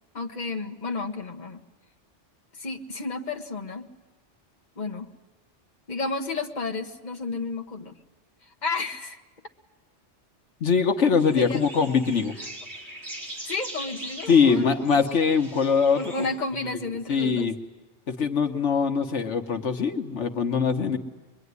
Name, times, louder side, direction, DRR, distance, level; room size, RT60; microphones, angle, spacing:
voice 1, 0.1-1.6 2.5-3.9 4.8-5.1 5.9-8.0 8.4-9.2 11.3-11.6 13.5-15.0 15.9-17.5, left 3 dB, 40° left, 3 dB, 1.6 m, -32 dB
voice 2, 10.6-12.3 14.3-16.3 17.1-17.5 18.1-21.0, left 5 dB, 80° left, 5 dB, 1.6 m, -22 dB
sound 1, 11.1-16.3, right 1 dB, 60° right, 4.2 m, -41 dB
24.0 x 23.5 x 9.6 m, 1.1 s
omnidirectional pair, 1.2 m